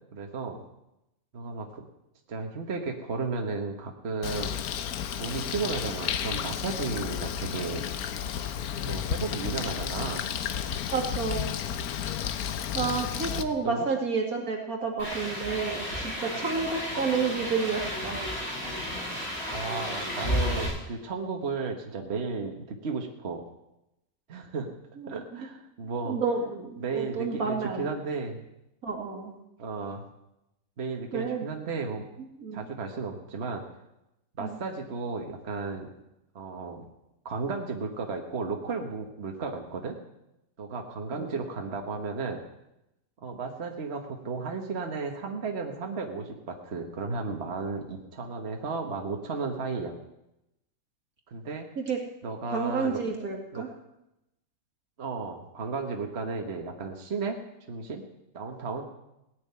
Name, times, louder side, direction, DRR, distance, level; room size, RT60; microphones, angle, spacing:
voice 1, 0.1-0.6 1.3-1.8 2.3-4.5 5.2-7.9 8.9-10.3 13.4-13.9 19.5-23.4 24.3-24.7 25.1-26.2 26.8-28.4 29.6-30.0 30.8-32.1 32.5-33.6 34.4-35.9 36.3-36.9 37.2-40.0 40.6-42.4 43.2-49.9 51.3-51.7 52.2-53.0 53.5-53.6 55.0-57.4 57.7-58.1 58.3-58.8, right 4 dB, 45° right, 3 dB, 1.6 m, -34 dB
Bird, 4.2-13.4, left 8 dB, 90° left, 1.3 m, -32 dB
voice 2, 10.9-11.5 12.7-18.2 25.0-25.1 26.0-27.9 28.8-29.3 31.1-31.5 32.4-32.7 34.4-34.6 41.1-41.3 51.8-52.0 52.5-53.7, right 5 dB, 80° right, 1 dB, 2.8 m, -30 dB
sound 1, 15.0-20.7, equal, 50° left, 8.2 m, -32 dB
18.0 x 6.6 x 9.5 m, 0.88 s
omnidirectional pair, 1.5 m